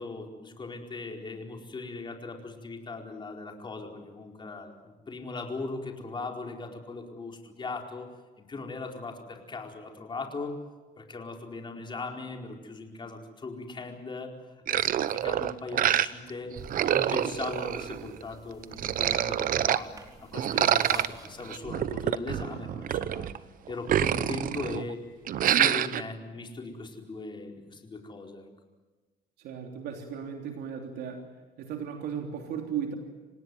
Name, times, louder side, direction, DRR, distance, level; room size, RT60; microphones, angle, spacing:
voice 1, 0.0-8.1 8.4-10.6 11.0-14.3 14.7-16.5 16.8-19.9 20.2-23.3 23.7-25.0 25.4-28.4, left 3 dB, 30° left, 2 dB, 4.5 m, -39 dB
sound 1, 14.7-16.3 16.6-18.2 18.6-19.8 20.3-23.4 23.7-24.9 25.3-26.0, right 11 dB, 55° right, 0.9 m, -27 dB
sound 2, 16.5-21.6, right 2 dB, 20° right, 4.5 m, -51 dB
voice 2, 29.4-31.2 31.6-32.9, right 8 dB, 80° right, 2 dB, 3.3 m, -35 dB
27.0 x 18.5 x 9.4 m, 1.3 s
cardioid pair, 110°, 17 cm